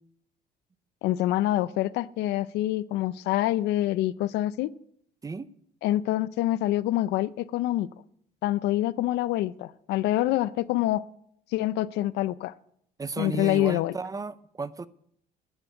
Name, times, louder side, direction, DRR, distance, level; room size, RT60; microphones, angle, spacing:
voice 1, 1.0-4.7 5.8-7.9 8.4-11.0 11.5-12.5 13.2-13.9, left 15 dB, 85° left, 0.6 m, -26 dB
voice 2, 5.2-5.5 13.0-14.9, right 4 dB, 20° right, 0.6 m, -34 dB
11.0 x 9.8 x 8.0 m
cardioid pair, 110°, 17 cm